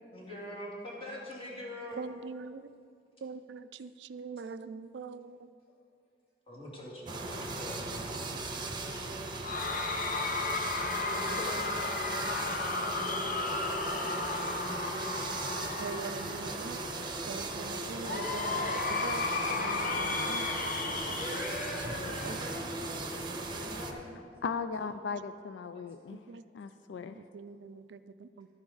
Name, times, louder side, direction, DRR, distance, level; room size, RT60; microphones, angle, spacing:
voice 1, 0.1-2.0 6.5-8.1 11.1-11.7 21.1-22.7 23.5-24.1, left 1 dB, 30° left, -5 dB, 2.5 m, -42 dB
voice 2, 2.0-2.6 3.2-5.4 15.8-16.8 17.3-20.5 22.2-22.4 26.3-26.4 27.2-28.5, right 5 dB, 70° right, 13 dB, 0.4 m, -42 dB
sound 1, 7.1-23.9, right 2 dB, 25° right, 0.9 m, -38 dB
Cheering / Crowd, 9.4-16.7 18.0-22.8, left 3 dB, 50° left, 0.8 m, -34 dB
voice 3, 24.4-26.2 26.5-27.2, left 5 dB, 75° left, 11 dB, 0.3 m, -37 dB
12.0 x 9.6 x 4.0 m, 2.3 s
head